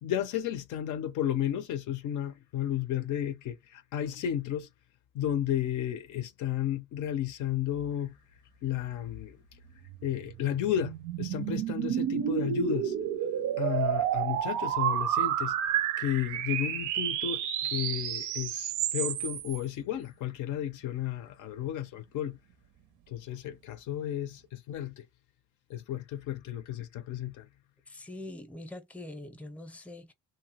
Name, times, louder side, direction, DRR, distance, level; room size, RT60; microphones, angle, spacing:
voice 1, 0.0-4.7 5.1-8.2 8.6-9.4 10.0-12.9 13.6-15.5 16.0-22.4 23.1-25.1 25.7-27.5, left 10 dB, 80° left, 0.5 m, -33 dB
sound 1, 9.9-19.6, right 10 dB, 85° right, 0.5 m, -30 dB
voice 2, 27.9-30.1, left 1 dB, 5° left, 0.5 m, -43 dB
2.7 x 2.1 x 2.8 m
cardioid pair, 90°, 30 cm